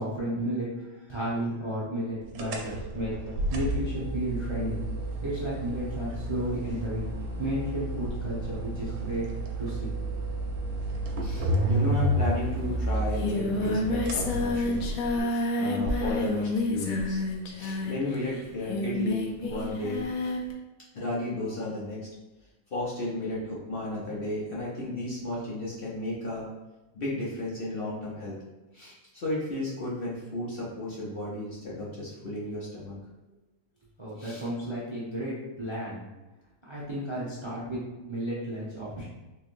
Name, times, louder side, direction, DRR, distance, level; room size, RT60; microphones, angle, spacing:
voice 1, 0.0-3.1 3.5-4.8 5.2-7.0 7.4-9.3 9.6-9.9 34.0-36.0 36.7-39.0, right 1 dB, 25° right, -8 dB, 0.6 m, -33 dB
sound 1, 2.3-15.2, right 1 dB, 85° right, 1.1 m, -31 dB
voice 2, 11.2-14.8 15.6-17.2 17.6-20.0 20.9-22.1 22.7-26.5 26.9-28.4 28.7-32.9 34.2-34.5, left 1 dB, 45° left, -7 dB, 0.9 m, -33 dB
Singing, 12.5-12.6 12.8-20.5, left 2 dB, 75° left, 1.0 m, -29 dB
3.7 x 3.2 x 2.5 m, 1.0 s
omnidirectional pair, 1.5 m